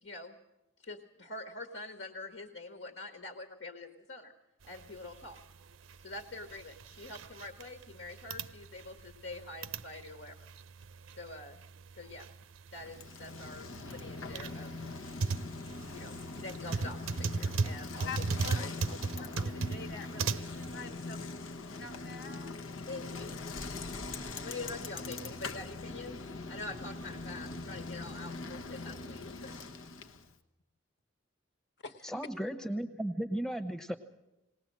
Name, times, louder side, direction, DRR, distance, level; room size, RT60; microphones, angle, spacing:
voice 1, 0.0-0.4 0.8-4.3 4.6-5.4 6.0-10.4 11.2-11.6 11.9-12.3 12.7-14.7 15.9-18.3 18.5-19.3 22.9-23.4 24.4-29.6, left 2 dB, 75° left, 1.6 m, -45 dB
sound 1, 4.7-20.7, right 4 dB, 85° right, 0.6 m, -38 dB
Bicycle, 12.8-30.3, left 3 dB, 90° left, 1.2 m, -42 dB
voice 2, 18.0-18.6 18.9-21.3 21.8-22.5 31.8-32.1, left 5 dB, 55° left, 1.4 m, -45 dB
voice 3, 32.0-33.9, right 1 dB, 5° left, 0.9 m, -35 dB
19.5 x 19.0 x 7.6 m
head